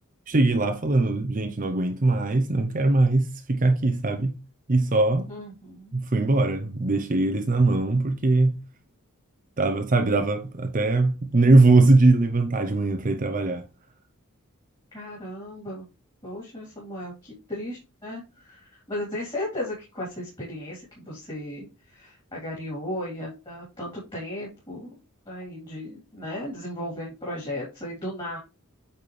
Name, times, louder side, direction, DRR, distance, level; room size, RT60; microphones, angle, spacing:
voice 1, 0.3-4.4 4.7-5.3 5.9-8.5 9.6-13.6, right 2 dB, 40° right, 0.7 m, -21 dB
voice 2, 5.3-6.0 14.9-15.8 16.2-24.9 25.2-28.4, left 1 dB, 25° left, 3.3 m, -35 dB
8.6 x 4.2 x 3.2 m
head